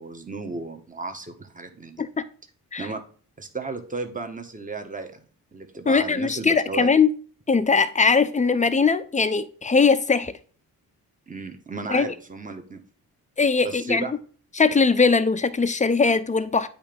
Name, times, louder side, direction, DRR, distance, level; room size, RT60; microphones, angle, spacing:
voice 1, 0.0-2.0 2.8-3.0 3.4-5.1 5.5-6.9 11.3-12.8 13.6-14.1, right 3 dB, 20° right, 1.3 m, -34 dB
voice 2, 5.9-7.1 7.5-10.3 11.9-12.1 13.4-14.0 14.6-16.7, left 4 dB, 20° left, 0.7 m, -20 dB
8.7 x 2.9 x 5.2 m
supercardioid pair, 50°, 41 cm